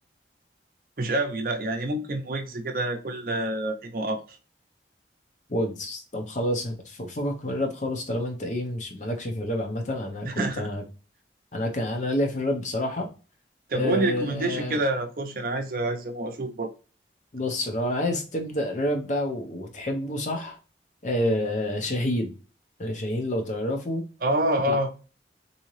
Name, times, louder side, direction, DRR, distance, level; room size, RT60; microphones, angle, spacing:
voice 1, 1.0-4.2 10.2-10.7 13.7-16.7 24.2-24.9, right 1 dB, 50° right, 0.6 m, -27 dB
voice 2, 5.5-10.8 11.5-13.1 13.7-14.8 17.3-20.6 21.0-22.3 22.8-24.0 24.7-24.8, left 1 dB, 40° left, 0.7 m, -28 dB
3.7 x 2.8 x 3.1 m
head